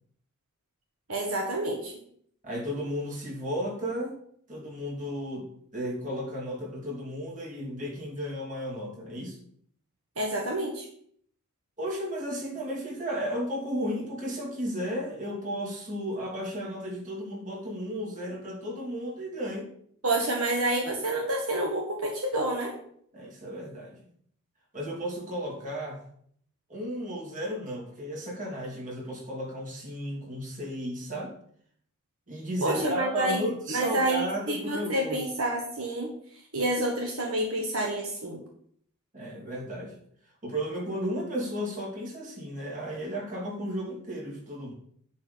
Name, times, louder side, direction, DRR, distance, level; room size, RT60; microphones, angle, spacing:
voice 1, 1.1-1.9 10.2-10.9 20.0-22.7 32.6-33.4 33.7-36.1 36.5-38.4, right 1 dB, 75° right, 0 dB, 1.7 m, -28 dB
voice 2, 2.4-4.2 4.5-5.5 5.7-9.4 11.8-19.7 23.1-24.0 24.7-26.0 26.7-31.3 32.3-35.2 39.1-39.9 40.4-44.7, equal, 35° right, -2 dB, 3.2 m, -34 dB
10.5 x 4.4 x 6.9 m, 0.62 s
head